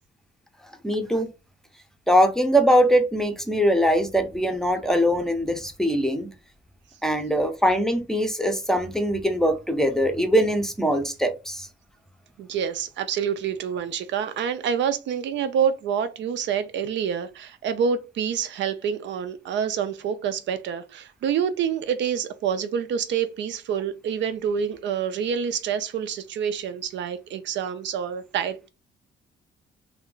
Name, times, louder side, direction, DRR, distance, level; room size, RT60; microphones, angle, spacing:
voice 1, 0.8-1.3 2.1-6.3 7.0-11.7, equal, ahead, 0.5 m, -22 dB
voice 2, 12.4-28.7, right 7 dB, 70° right, 0.4 m, -27 dB
2.5 x 2.1 x 3.7 m
cardioid pair, 90°, 20 cm